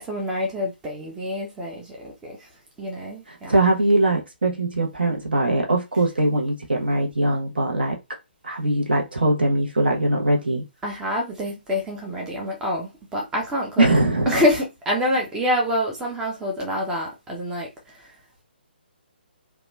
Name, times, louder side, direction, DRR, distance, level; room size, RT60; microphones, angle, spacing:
voice 1, 0.0-2.4 2.8-3.5 10.8-13.9 14.3-17.7 18.0-18.1, left 1 dB, 10° right, 0.5 m, -26 dB
voice 2, 3.3-8.0 8.4-10.6 13.8-14.4, right 2 dB, 65° right, 0.8 m, -21 dB
2.9 x 2.2 x 2.2 m
figure-of-eight pair, 135°, 6 cm